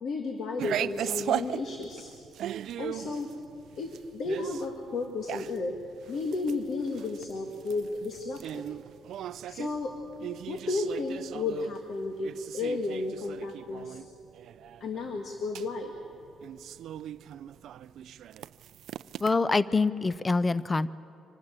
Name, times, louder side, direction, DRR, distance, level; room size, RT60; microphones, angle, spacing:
voice 1, 0.0-2.1 2.8-3.3 3.8-5.7 6.1-8.6 9.5-9.9 10.5-14.0 14.8-15.9, left 3 dB, 55° left, 4 dB, 1.6 m, -33 dB
sound 1, 0.6-19.3, right 11 dB, 70° right, 0.4 m, -38 dB
voice 2, 19.2-20.9, left 3 dB, 20° left, 17 dB, 0.5 m, -25 dB
25.0 x 12.5 x 8.7 m, 2.7 s
cardioid pair, 135°, 0 cm